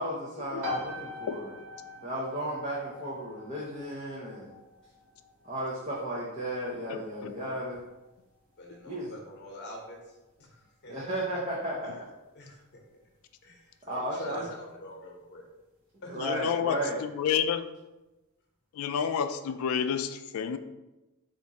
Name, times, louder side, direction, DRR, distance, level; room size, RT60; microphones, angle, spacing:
voice 1, 0.0-1.5 2.0-4.5 5.4-7.8 8.9-9.1 10.9-11.9 13.9-14.5 16.1-17.0, right 1 dB, 30° right, -6 dB, 0.6 m, -34 dB
sound 1, 0.6-15.1, left 2 dB, 60° right, 1.1 m, -45 dB
voice 2, 6.9-7.3 16.1-17.7 18.7-20.6, left 7 dB, 65° left, 10 dB, 0.3 m, -30 dB
voice 3, 8.6-10.9 12.3-12.6 13.4-15.5 16.0-16.2, left 1 dB, 50° left, 0 dB, 0.9 m, -45 dB
3.5 x 2.5 x 4.0 m, 1.0 s
head